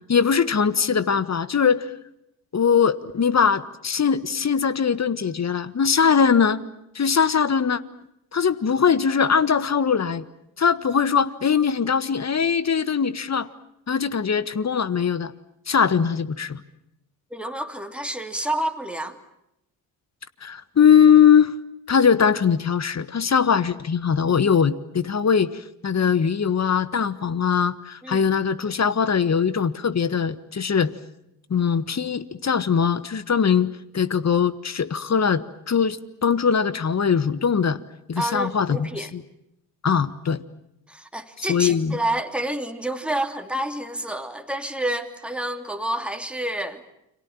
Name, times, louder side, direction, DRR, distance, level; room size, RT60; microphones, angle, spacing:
voice 1, 0.1-1.9 2.5-6.6 6.9-7.8 8.3-10.2 10.6-13.5 13.9-15.3 15.7-16.6 20.4-21.5 21.9-30.9 31.5-33.7 33.9-37.8 38.1-39.2 39.8-40.4 41.4-42.0, left 7 dB, 35° left, 15 dB, 1.6 m, -21 dB
voice 2, 17.3-19.2 28.0-28.3 38.2-39.1 40.9-46.8, right 1 dB, ahead, 6 dB, 3.0 m, -29 dB
30.0 x 23.5 x 7.3 m, 0.80 s
hypercardioid pair, 45°, 45 cm